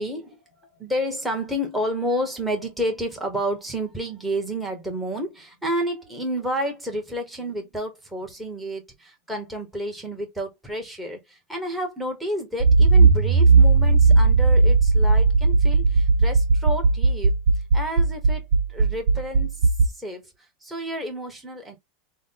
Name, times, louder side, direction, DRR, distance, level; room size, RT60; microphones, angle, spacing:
voice 1, 0.0-17.3 17.7-20.2 20.6-21.8, equal, 5° right, 1.3 m, -30 dB
Accelerating revving vroom, 12.6-19.9, right 4 dB, 80° right, 0.6 m, -17 dB
6.1 x 2.2 x 3.8 m
supercardioid pair, 145°, 0 cm